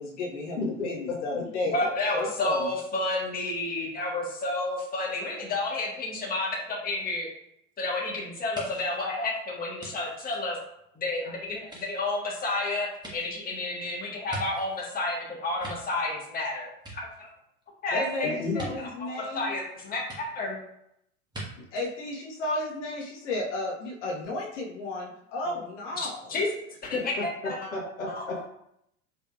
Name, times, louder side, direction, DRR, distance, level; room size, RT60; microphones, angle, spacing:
voice 1, 0.0-2.7 17.9-19.5 21.7-26.4, left 2 dB, 60° left, -2 dB, 1.3 m, -33 dB
voice 2, 0.6-0.9 18.2-18.7 26.9-28.5, left 3 dB, 80° left, -3 dB, 1.1 m, -32 dB
voice 3, 1.7-7.3 7.8-10.6 10.9-17.3 17.8-18.3 18.8-20.6 26.0-26.5 26.8-27.7 28.1-28.2, left 2 dB, 20° left, -3 dB, 1.4 m, -31 dB
sound 1, 8.5-11.1 11.6-14.9 15.3-16.4 16.7-17.6 18.5-18.7 20.1-20.2 21.3-21.4 21.8-21.9, right 2 dB, 10° right, 1.4 m, -43 dB
4.8 x 3.3 x 2.4 m, 0.75 s
figure-of-eight pair, 80°, 40 cm